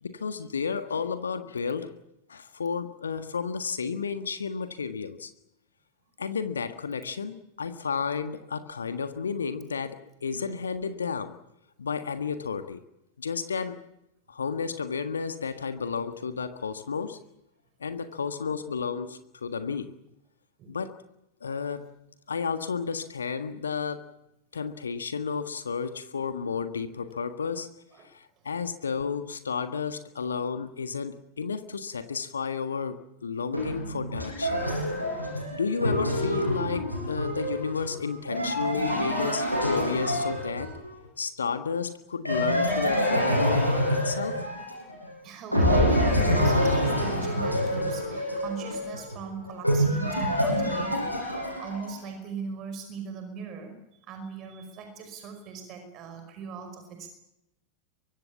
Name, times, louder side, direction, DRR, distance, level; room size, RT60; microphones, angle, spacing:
voice 1, 0.0-1.9 2.3-5.3 6.2-11.4 11.8-12.8 13.2-13.9 14.3-17.2 17.8-19.9 20.7-21.0 21.4-21.9 22.3-24.2 24.5-27.7 28.1-34.6 35.5-40.7 41.2-44.5, left 5 dB, 70° left, 10 dB, 1.5 m, -32 dB
sound 1, 33.5-40.9 42.3-45.1 45.5-52.0, equal, 90° left, 7.2 m, -26 dB
voice 2, 45.2-51.0 51.6-57.1, right 5 dB, 35° right, 7 dB, 5.3 m, -39 dB
24.0 x 24.0 x 7.2 m, 0.87 s
figure-of-eight pair, 90°, 0 cm